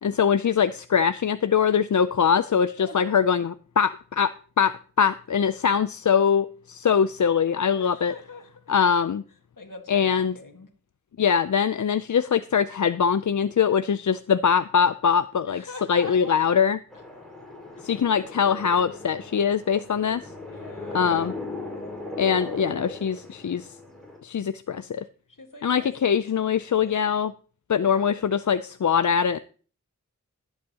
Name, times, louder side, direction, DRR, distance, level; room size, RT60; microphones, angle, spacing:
voice 1, 0.0-8.1 8.7-9.2 9.9-10.3 11.2-16.8 17.8-20.3 20.9-21.3 22.2-23.7 24.2-25.0 25.6-27.3 27.7-29.4, left 7 dB, 70° left, 0.5 m, -22 dB
voice 2, 2.8-3.4 7.8-8.7 9.6-10.7 15.5-16.5 20.5-21.4 25.3-27.1 27.8-28.2, left 3 dB, 85° left, 1.8 m, -44 dB
sound 1, 16.9-24.2, left 2 dB, ahead, 5.2 m, -38 dB
19.0 x 8.0 x 2.9 m
wide cardioid pair, 45°, 31 cm